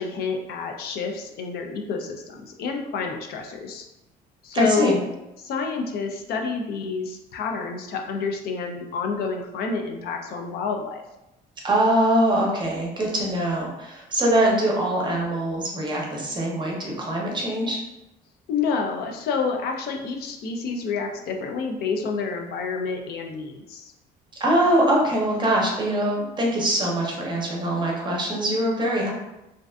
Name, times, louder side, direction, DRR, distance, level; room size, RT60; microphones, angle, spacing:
voice 1, 0.0-3.9 4.4-5.0 5.4-11.0 18.5-23.9, left 5 dB, 65° left, 3 dB, 0.4 m, -28 dB
voice 2, 4.5-5.0 11.6-17.8 24.4-29.1, right 1 dB, 25° right, -2 dB, 0.6 m, -23 dB
2.5 x 2.3 x 2.2 m, 0.95 s
cardioid pair, 110°, 17 cm